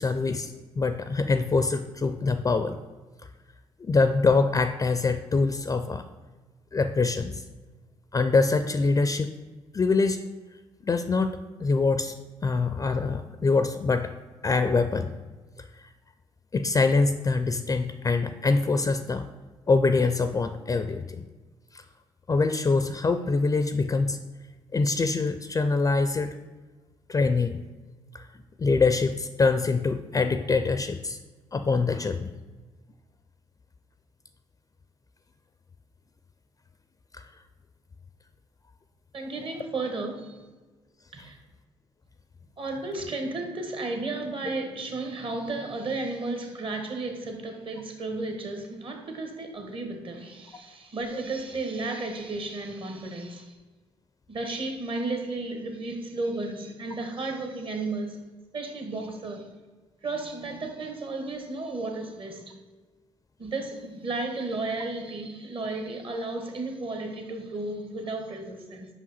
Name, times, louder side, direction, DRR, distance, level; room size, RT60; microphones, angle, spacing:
voice 1, 0.0-2.8 3.8-6.0 6.7-7.4 8.1-9.3 9.7-10.2 10.8-11.3 11.6-14.1 14.4-15.1 16.5-19.3 19.7-21.2 21.7-21.8 22.3-24.2 24.7-26.3 27.1-27.6 28.1-28.3 28.6-31.2 31.5-32.3 37.1-37.2 41.2-41.3, left 3 dB, 30° left, 10 dB, 0.4 m, -24 dB
voice 2, 39.1-40.4 41.1-41.4 42.6-53.5 54.3-58.2 58.5-59.5 60.0-62.5 63.4-68.9, right 2 dB, 50° right, 4 dB, 1.2 m, -33 dB
5.2 x 4.8 x 4.1 m, 1.3 s
supercardioid pair, 55°, 12 cm